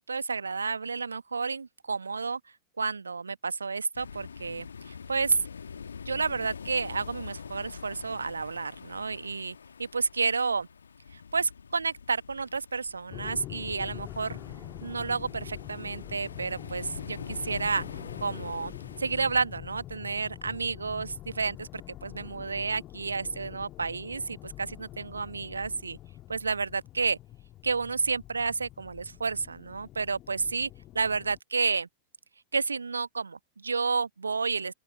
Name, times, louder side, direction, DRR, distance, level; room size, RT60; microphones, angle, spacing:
voice 1, 0.1-2.4 2.8-5.4 6.0-10.7 11.1-14.4 14.8-17.8 18.2-26.0 26.3-27.2 27.6-30.7 30.9-31.9 32.5-34.7, right 4 dB, 75° right, 1.3 m, -31 dB
sound 1, 3.9-19.4, left 6 dB, 70° left, 1.8 m, -44 dB
sound 2, 13.1-31.4, left 14 dB, 35° left, 2.2 m, -45 dB
open air
figure-of-eight pair, 90°, 0 cm